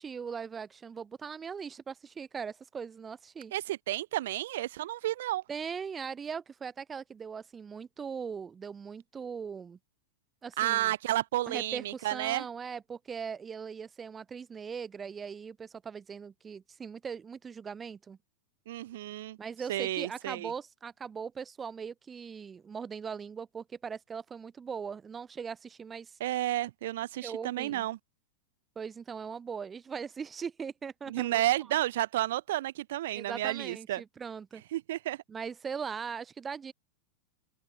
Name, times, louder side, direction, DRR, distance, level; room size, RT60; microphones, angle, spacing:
voice 1, 0.0-3.5 5.5-9.8 10.4-10.9 11.4-18.2 19.4-26.2 27.2-27.9 28.8-31.4 33.1-34.6 35.3-36.7, right 6 dB, 20° right, 5.1 m, -40 dB
voice 2, 3.5-5.4 10.6-12.5 18.7-19.4 19.7-20.5 26.2-28.0 31.1-34.0 34.7-35.2, right 14 dB, 55° right, 0.4 m, -31 dB
open air
figure-of-eight pair, 90°, 0 cm